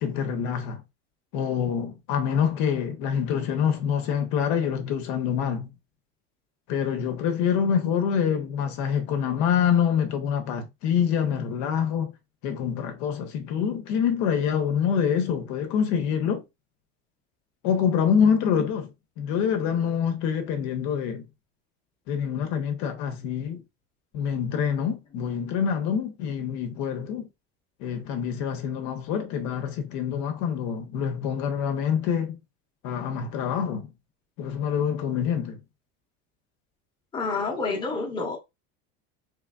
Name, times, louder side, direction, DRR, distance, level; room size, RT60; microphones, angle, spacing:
voice 1, 0.0-0.8 1.3-5.7 6.7-12.1 12.4-16.4 17.6-21.3 22.1-23.6 24.1-27.3 27.8-32.4 32.8-33.9 34.4-35.6, left 7 dB, 65° left, 0.8 m, -26 dB
voice 2, 37.1-38.4, left 4 dB, 15° left, 0.9 m, -28 dB
3.4 x 3.3 x 2.4 m
cardioid pair, 145°, 32 cm